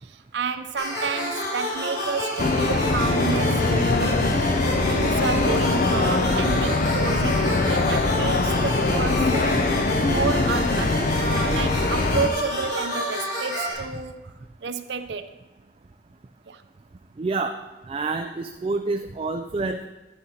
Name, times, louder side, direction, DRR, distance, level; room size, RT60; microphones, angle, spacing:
voice 1, 0.0-4.3 4.9-14.3 14.6-15.3 16.5-16.6, right 5 dB, 80° right, 10 dB, 0.6 m, -30 dB
sound 1, 0.8-13.7, equal, 75° left, 3.6 m, -29 dB
sound 2, 2.4-12.3, left 3 dB, 50° left, 0.5 m, -22 dB
voice 2, 17.2-17.6 17.9-19.9, right 3 dB, 30° right, 6 dB, 0.3 m, -27 dB
10.5 x 9.8 x 2.8 m, 1.1 s
head